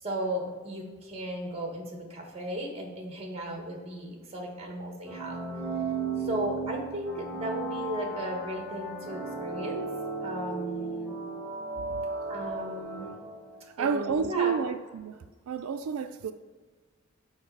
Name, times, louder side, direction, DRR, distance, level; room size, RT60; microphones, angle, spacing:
voice 1, 0.0-5.4 6.2-9.9 10.2-11.2 12.3-13.2 13.8-14.5, equal, 30° right, 1.4 m, -35 dB
sound 1, 5.1-13.7, right 4 dB, ahead, 1.2 m, -35 dB
voice 2, 13.8-15.2 15.5-16.3, right 6 dB, 85° right, 0.4 m, -29 dB
6.4 x 5.1 x 4.8 m
head